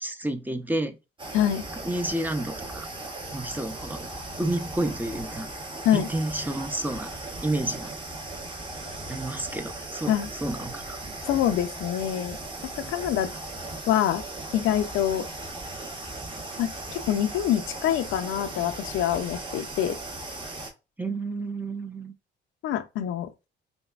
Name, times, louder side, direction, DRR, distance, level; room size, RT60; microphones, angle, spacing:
voice 1, 0.0-1.0 1.8-2.9 3.3-4.1 4.4-5.5 5.9-7.1 7.4-8.0 9.1-10.2 10.4-11.0 21.0-22.1, right 1 dB, 10° right, 0.5 m, -30 dB
sound 1, 1.2-20.7, right 2 dB, 25° right, 1.0 m, -38 dB
voice 2, 1.3-1.6 5.8-6.1 10.1-10.3 11.3-12.4 12.8-13.3 13.9-14.2 14.5-15.3 16.6-20.0 22.6-23.3, left 11 dB, 90° left, 0.5 m, -25 dB
5.2 x 2.2 x 2.4 m
cardioid pair, 90°, 20 cm